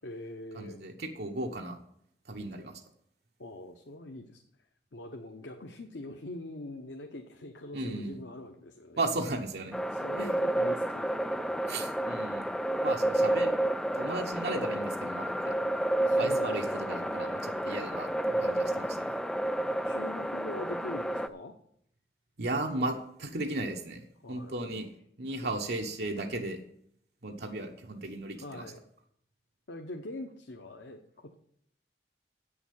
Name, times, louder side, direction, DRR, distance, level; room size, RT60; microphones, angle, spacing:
voice 1, 0.0-0.8 3.4-4.4 4.9-9.0 9.9-12.0 16.0-17.4 19.8-21.5 24.2-24.8 25.4-25.6 28.4-28.8 29.7-31.3, left 1 dB, 85° left, 4 dB, 1.0 m, -43 dB
voice 2, 0.5-1.8 2.3-2.7 7.7-8.2 9.0-9.7 10.2-10.3 11.7-12.5 12.8-13.6 14.0-15.5 16.2-19.1 22.4-24.9 25.2-26.6 27.2-28.7, right 2 dB, 65° right, 2 dB, 1.1 m, -35 dB
sound 1, 9.7-21.3, right 1 dB, 5° left, 0.3 m, -30 dB
8.4 x 7.0 x 8.6 m, 0.71 s
head